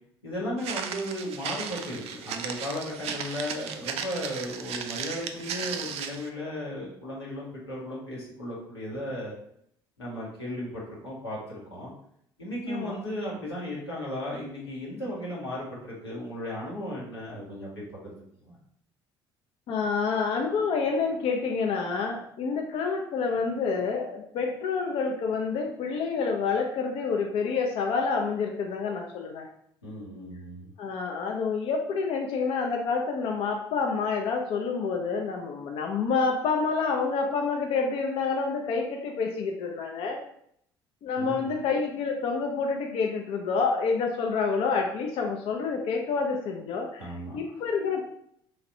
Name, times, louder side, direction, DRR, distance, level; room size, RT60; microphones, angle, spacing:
voice 1, 0.2-9.3 10.0-11.9 12.4-17.7 18.0-18.2 18.5-18.6 29.8-30.7 41.2-41.5 47.0-47.4, left 1 dB, 90° left, -6 dB, 1.0 m, -35 dB
Walk footsteps, 0.6-6.3, right 7 dB, 55° right, 0.4 m, -36 dB
voice 2, 12.7-13.0 19.7-29.5 30.8-40.2 41.0-48.0, left 5 dB, 50° left, 2 dB, 0.4 m, -28 dB
3.1 x 2.4 x 2.7 m, 0.70 s
figure-of-eight pair, 60°, 13 cm